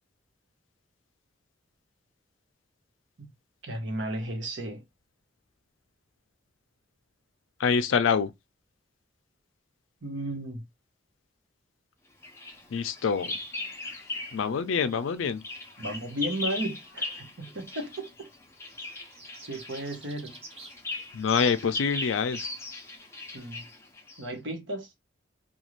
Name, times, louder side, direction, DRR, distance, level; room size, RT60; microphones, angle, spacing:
voice 1, 3.6-4.8 10.0-10.6 15.8-18.3 19.5-20.4 23.3-23.7 24.2-24.9, right 1 dB, 70° right, 1.0 m, -34 dB
voice 2, 7.6-8.3 12.7-13.4 14.3-15.4 21.1-22.5, left 6 dB, 90° left, 0.4 m, -26 dB
Bird vocalization bird call bird song, 12.2-14.5 14.8-24.3, left 2 dB, 15° left, 0.5 m, -39 dB
sound 1, 18.7-20.8, right 3 dB, 30° right, 0.7 m, -48 dB
2.5 x 2.3 x 3.1 m
head